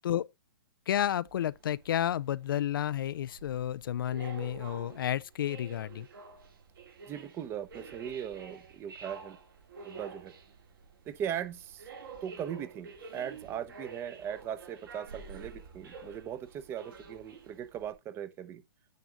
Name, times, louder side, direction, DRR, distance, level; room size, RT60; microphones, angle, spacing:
voice 1, 0.9-6.1, left 11 dB, 65° left, 0.4 m, -31 dB
sound 1, 1.3-17.9, right 5 dB, 70° right, 4.0 m, -49 dB
voice 2, 7.1-9.4 9.8-10.3 11.1-11.9 12.2-18.6, right 9 dB, 20° right, 0.7 m, -39 dB
9.5 x 4.8 x 3.8 m
hypercardioid pair, 145°, 12 cm